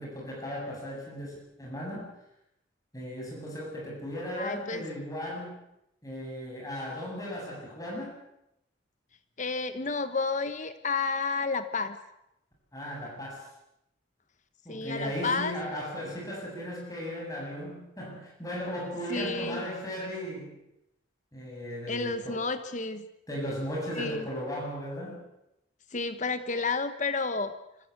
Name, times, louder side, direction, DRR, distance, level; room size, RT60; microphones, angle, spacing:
voice 1, 0.0-2.1 2.9-5.6 6.0-8.1 12.7-13.4 14.6-20.5 21.3-22.4 23.3-25.2, equal, 20° left, -2 dB, 7.8 m, -36 dB
voice 2, 4.3-4.8 9.4-12.0 14.7-15.5 19.1-19.7 21.9-23.1 23.9-24.3 25.9-27.5, left 4 dB, 40° left, 10 dB, 1.1 m, -31 dB
26.0 x 15.0 x 8.2 m, 0.83 s
head